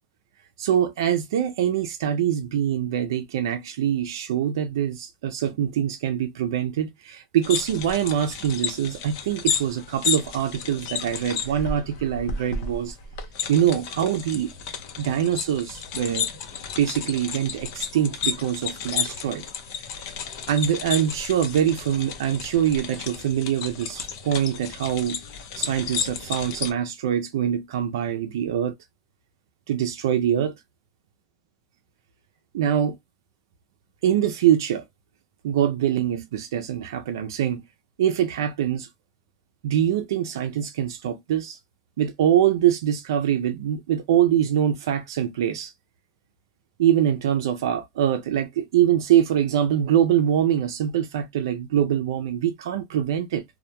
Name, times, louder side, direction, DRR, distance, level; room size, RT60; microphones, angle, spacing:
voice 1, 0.6-12.9 13.5-14.5 15.0-16.3 16.8-19.4 20.5-25.2 25.5-28.7 29.7-30.5 32.5-33.0 34.0-34.8 35.4-37.6 38.0-38.9 39.6-41.6 42.0-45.7 46.8-53.4, right 10 dB, 85° right, 0.4 m, -24 dB
sound 1, 7.4-26.7, left 7 dB, 70° left, 0.7 m, -32 dB
2.2 x 2.1 x 2.8 m
supercardioid pair, 100°, 2 cm